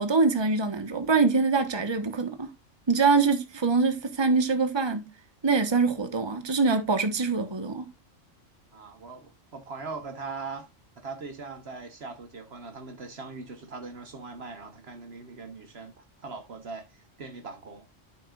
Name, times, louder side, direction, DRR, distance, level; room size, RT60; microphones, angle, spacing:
voice 1, 0.0-2.5 2.9-5.1 5.4-7.9, right 4 dB, 20° right, 1.2 m, -24 dB
voice 2, 8.7-10.7 11.0-15.9 16.2-16.9 17.2-17.9, right 4 dB, 55° right, 1.3 m, -40 dB
13.0 x 6.1 x 2.4 m
omnidirectional pair, 1.3 m